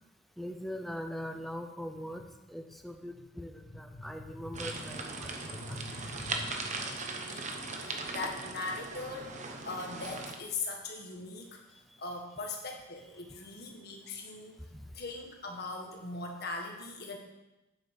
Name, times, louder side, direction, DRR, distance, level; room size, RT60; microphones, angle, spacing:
voice 1, 0.4-2.2 2.5-5.9 14.7-14.8, equal, ahead, 5 dB, 0.6 m, -41 dB
voice 2, 3.7-4.7 5.5-6.5 7.2-9.3 9.6-11.6 12.0-14.6 14.9-17.2, left 3 dB, 50° left, 1 dB, 1.8 m, -41 dB
sound 1, 4.5-10.3, right 3 dB, 35° right, 1.0 m, -39 dB
9.0 x 7.7 x 5.6 m, 1.0 s
head